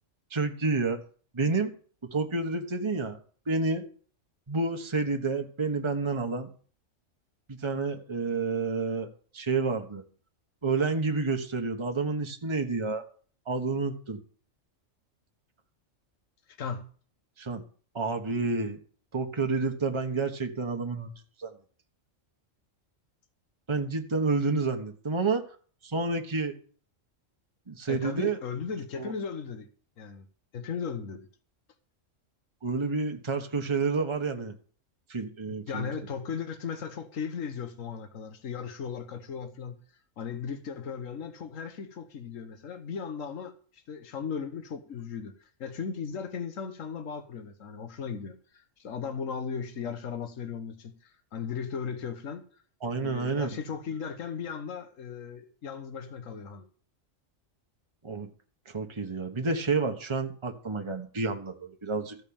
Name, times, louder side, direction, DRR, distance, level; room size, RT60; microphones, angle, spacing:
voice 1, 0.3-1.0 1.3-1.7 2.0-3.2 3.5-3.9 4.5-6.5 7.5-9.1 9.3-10.0 10.6-13.0 13.5-14.2 17.4-17.6 17.9-18.8 19.1-21.1 21.4-21.5 23.7-25.4 25.8-26.6 27.7-28.4 29.0-29.1 32.6-34.5 35.1-35.9 52.8-53.5 58.0-58.3 58.7-62.2, right 4 dB, 20° right, 1.3 m, -29 dB
voice 2, 16.6-16.9 27.9-29.7 30.0-30.3 30.5-31.3 35.7-39.8 40.2-52.4 53.0-56.7, left 6 dB, 80° left, 1.5 m, -37 dB
15.0 x 5.4 x 8.7 m
omnidirectional pair, 1.3 m